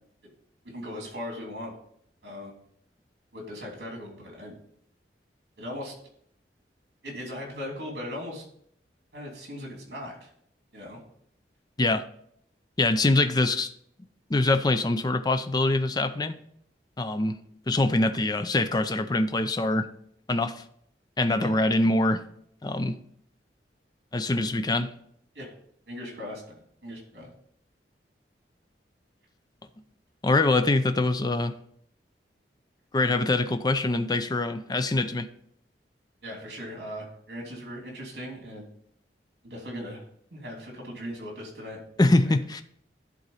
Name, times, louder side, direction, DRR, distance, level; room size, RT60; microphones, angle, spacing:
voice 1, 0.6-1.7 2.2-2.5 3.3-4.5 5.6-5.9 7.0-8.4 9.1-10.3 10.7-11.0 21.3-21.5 25.3-25.5 25.9-27.3 36.2-38.7 39.4-40.0 40.3-41.8, equal, 65° right, 0 dB, 3.1 m, -38 dB
voice 2, 12.8-13.7 14.3-16.3 17.0-17.4 17.7-19.9 20.3-20.6 21.2-22.2 22.6-23.0 24.1-24.9 30.2-31.5 32.9-35.3 42.0-42.6, left 2 dB, 25° left, 9 dB, 0.5 m, -24 dB
11.0 x 3.9 x 5.6 m, 0.68 s
head